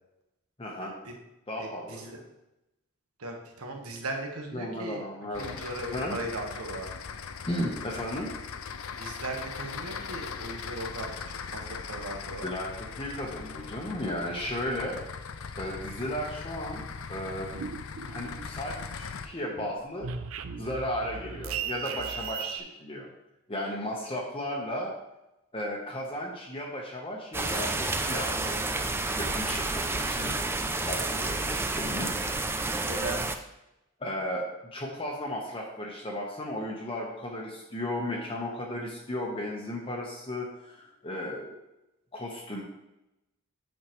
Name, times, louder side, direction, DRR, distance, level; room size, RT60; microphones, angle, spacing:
voice 1, 0.6-0.9 1.5-2.2 4.5-5.6 5.9-6.2 7.5-8.3 12.4-12.7 13.0-15.0 15.6-16.8 17.1-17.5 18.0-20.1 20.6-23.1 23.5-24.9 25.5-28.8 29.2-30.4 30.8-32.1 34.0-41.5 42.1-42.6, left 1 dB, 25° left, -2 dB, 1.1 m, -35 dB
voice 2, 1.6-2.2 3.2-5.0 5.4-6.9 9.0-11.1 11.5-12.5 32.8-33.2, right 2 dB, 85° right, 1 dB, 1.4 m, -37 dB
sound 1, 5.3-19.3, left 6 dB, 70° left, 0.5 m, -40 dB
sound 2, 17.2-18.9 19.2-22.6, right 7 dB, 65° right, 0.5 m, -37 dB
sound 3, 27.3-33.4, right 2 dB, 10° right, 0.4 m, -30 dB
8.7 x 6.5 x 3.1 m, 0.92 s
head